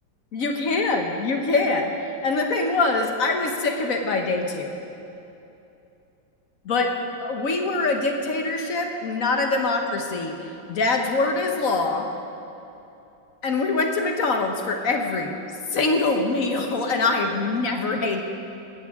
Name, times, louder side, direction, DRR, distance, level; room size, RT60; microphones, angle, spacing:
voice 1, 0.3-1.9 2.2-4.7 6.6-6.9 7.2-10.3 10.7-12.1 13.4-15.4 15.7-18.2, left 3 dB, 50° left, 3 dB, 1.3 m, -24 dB
18.5 x 14.0 x 3.6 m, 2.8 s
omnidirectional pair, 2.1 m